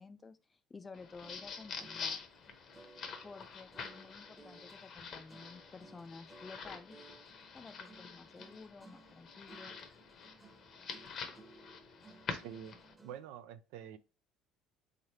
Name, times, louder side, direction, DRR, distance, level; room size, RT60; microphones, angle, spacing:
voice 1, 0.0-2.2 3.2-7.0 7.5-9.8, left 4 dB, 25° left, 0.4 m, -52 dB
sound 1, 0.9-12.9, left 5 dB, 50° left, 0.8 m, -47 dB
sound 2, 1.2-13.3, right 2 dB, 5° right, 0.9 m, -60 dB
voice 2, 12.3-12.8 13.0-14.0, right 9 dB, 75° right, 0.4 m, -47 dB
3.7 x 3.2 x 2.8 m
supercardioid pair, 80°, 0 cm